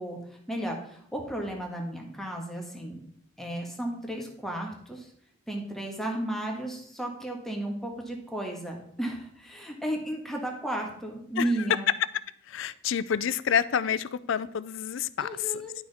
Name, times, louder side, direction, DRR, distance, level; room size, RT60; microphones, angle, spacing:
voice 1, 0.0-3.0 3.4-5.1 5.5-11.9 15.2-15.7, right 1 dB, ahead, 0 dB, 1.5 m, -34 dB
voice 2, 12.5-15.6, left 8 dB, 65° left, 17 dB, 0.4 m, -29 dB
10.5 x 6.1 x 4.2 m, 0.66 s
head